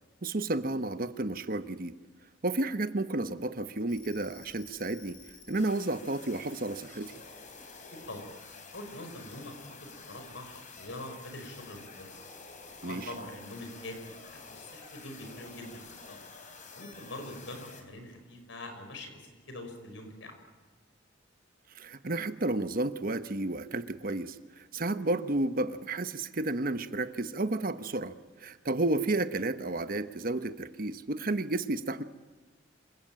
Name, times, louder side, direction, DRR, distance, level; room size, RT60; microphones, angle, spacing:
voice 1, 0.2-1.9 2.4-5.2 5.5-7.1 12.8-13.1 21.7-32.0, right 2 dB, 50° right, 11 dB, 1.0 m, -32 dB
sound 1, 3.9-17.8, left 4 dB, 40° left, 4.1 m, -50 dB
voice 2, 7.9-8.3 8.7-12.1 12.8-16.2 16.7-20.3, left 1 dB, 80° left, 6 dB, 5.4 m, -44 dB
26.5 x 17.0 x 8.8 m, 1.3 s
head